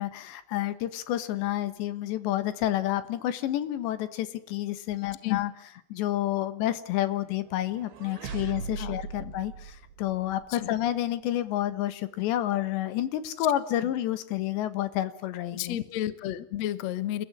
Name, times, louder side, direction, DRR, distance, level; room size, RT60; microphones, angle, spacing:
voice 1, 0.0-5.5 5.9-15.8, left 13 dB, 90° left, 13 dB, 3.7 m, -29 dB
sound 1, 7.4-10.5, right 5 dB, 65° right, 4.0 m, -39 dB
voice 2, 8.2-9.3 10.5-10.8 13.8-13.9 15.5-17.2, left 12 dB, 65° left, 15 dB, 1.7 m, -33 dB
28.5 x 15.0 x 9.8 m, 0.64 s
omnidirectional pair, 4.9 m